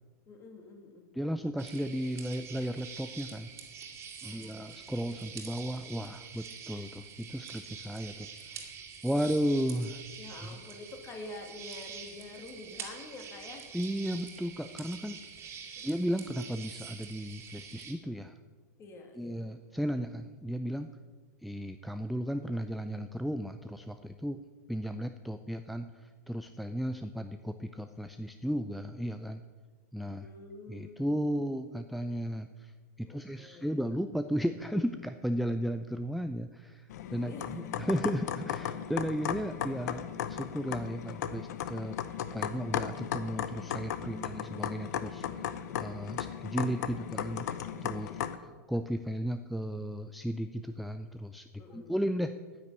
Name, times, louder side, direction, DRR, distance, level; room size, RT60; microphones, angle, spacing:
voice 1, 0.3-1.1 4.2-5.2 10.2-13.6 15.7-15.8 18.8-19.5 30.1-31.4 33.0-33.9 37.2-37.9 44.1-44.4 47.9-48.3 51.6-51.9, left 3 dB, 30° left, 4 dB, 2.5 m, -48 dB
voice 2, 1.2-3.5 4.2-8.3 8.5-8.7 9.0-10.0 10.4-10.6 13.7-15.2 15.8-18.3 19.2-20.9 21.4-24.4 24.7-29.4 29.9-30.3 30.7-32.7 33.0-42.0 42.3-45.5 45.8-47.5 47.8-48.1 48.7-51.5 51.7-52.4, equal, ahead, 8 dB, 0.4 m, -34 dB
sound 1, 1.6-17.9, right 6 dB, 30° right, 2.6 m, -46 dB
sound 2, 36.9-48.4, left 9 dB, 70° left, 0.9 m, -36 dB
10.0 x 9.5 x 8.3 m, 1.4 s
hypercardioid pair, 135°, 9 cm